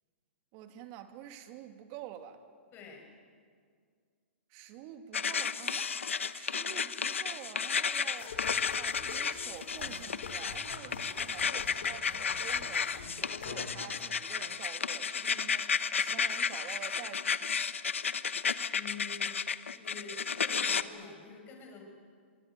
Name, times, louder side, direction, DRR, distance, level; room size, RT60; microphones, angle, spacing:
voice 1, 0.5-2.4 4.5-6.0 6.3-8.4 8.8-17.5, right 10 dB, 40° right, 7 dB, 2.4 m, -48 dB
voice 2, 2.7-3.1 18.7-19.3 19.7-21.8, left 5 dB, 30° left, 2 dB, 6.5 m, -47 dB
sound 1, 5.1-20.8, left 6 dB, 90° left, 1.0 m, -33 dB
sound 2, 8.2-14.0, left 5 dB, 70° left, 5.1 m, -46 dB
24.0 x 23.5 x 9.3 m, 2.1 s
hypercardioid pair, 130°, 7 cm